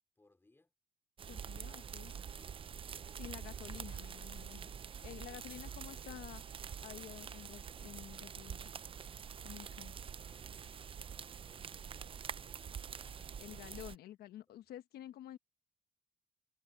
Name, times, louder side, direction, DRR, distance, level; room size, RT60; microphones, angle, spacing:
voice 1, 0.2-0.7 1.3-3.5 5.1-5.4 9.6-12.3 12.9-13.8 14.5-14.6, left 2 dB, 15° left, 4.0 m, -70 dB
sound 1, 1.2-14.0, right 7 dB, 30° right, 0.6 m, -46 dB
voice 2, 1.3-2.1 3.2-4.7 5.0-6.4 6.8-8.7 9.4-10.0 13.4-15.4, left 12 dB, 70° left, 1.1 m, -50 dB
cardioid pair, 110°, 17 cm